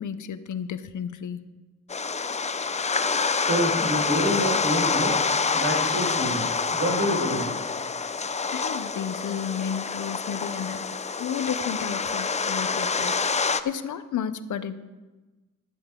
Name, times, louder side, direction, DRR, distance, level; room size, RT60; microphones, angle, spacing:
voice 1, 0.0-1.4 8.5-14.8, left 8 dB, 65° left, 12 dB, 0.8 m, -32 dB
sound 1, 1.9-13.6, left 5 dB, 20° left, 0.5 m, -27 dB
voice 2, 3.5-7.4, equal, 55° right, -2 dB, 5.0 m, -27 dB
12.5 x 12.5 x 3.8 m, 1.2 s
cardioid pair, 95°, 32 cm